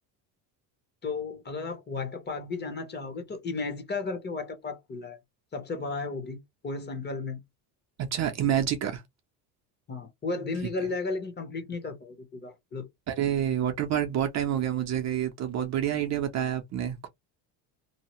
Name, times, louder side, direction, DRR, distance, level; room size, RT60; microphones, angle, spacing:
voice 1, 1.0-5.2 5.5-6.4 6.6-7.4 9.9-12.9, left 3 dB, 25° left, 0.9 m, -34 dB
voice 2, 8.0-9.0 13.1-17.1, right 10 dB, 40° right, 0.6 m, -28 dB
2.7 x 2.0 x 3.0 m
cardioid pair, 130°, 42 cm